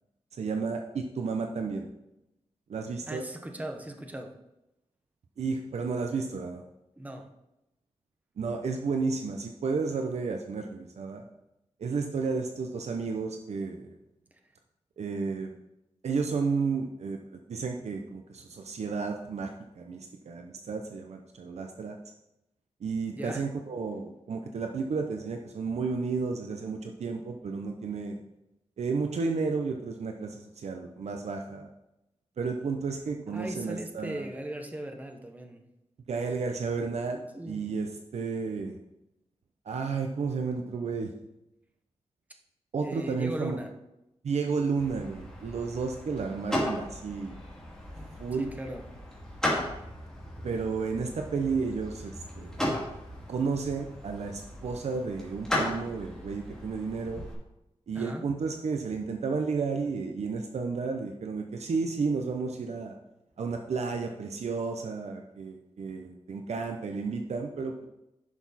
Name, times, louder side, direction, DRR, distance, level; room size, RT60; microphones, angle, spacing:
voice 1, 0.4-1.9 2.7-3.2 5.4-6.6 8.4-11.2 11.8-13.9 15.0-15.5 16.0-17.2 17.5-19.5 19.7-22.0 22.8-28.2 28.8-31.7 32.4-34.2 36.1-38.8 39.7-41.1 42.7-43.6 44.2-47.4 48.2-48.5 50.4-52.6 53.3-57.2 57.9-62.9 63.4-67.9, right 4 dB, 75° right, 4 dB, 0.8 m, -32 dB
voice 2, 3.1-4.3 7.0-7.3 23.1-23.5 33.3-35.6 37.3-37.6 42.8-43.7 48.3-48.8 57.9-58.2, right 1 dB, 15° right, 4 dB, 0.9 m, -38 dB
sound 1, 44.8-57.3, left 1 dB, 5° left, 2.5 m, -36 dB
11.0 x 6.1 x 4.2 m, 0.89 s
wide cardioid pair, 180°, 11 cm